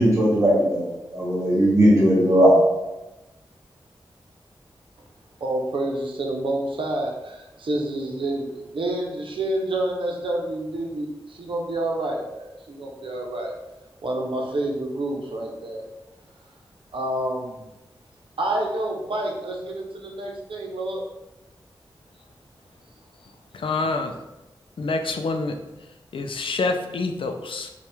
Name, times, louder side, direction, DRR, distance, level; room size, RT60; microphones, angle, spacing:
voice 1, 0.0-2.5, equal, 35° right, 1.5 m, -18 dB
voice 2, 5.4-13.5 14.0-15.8 16.9-17.7 18.4-21.0, right 1 dB, 75° right, 0.7 m, -28 dB
voice 3, 23.5-24.1 24.8-25.6 26.1-27.7, left 3 dB, 75° left, 0.4 m, -26 dB
4.4 x 2.3 x 3.4 m
wide cardioid pair, 105°, 9 cm